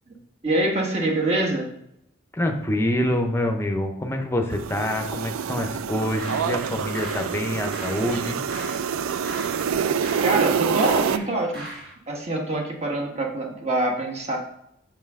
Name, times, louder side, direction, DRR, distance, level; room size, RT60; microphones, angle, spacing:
voice 1, 0.4-1.7 9.9-11.7 12.1-14.4, right 2 dB, 30° right, 0 dB, 1.2 m, -25 dB
voice 2, 2.3-8.4, left 1 dB, 10° left, 4 dB, 0.6 m, -26 dB
sound 1, 4.5-11.2, right 7 dB, 80° right, 0.3 m, -26 dB
sound 2, 6.0-11.9, right 1 dB, 45° right, 2.3 m, -40 dB
5.4 x 5.3 x 3.6 m, 0.77 s
head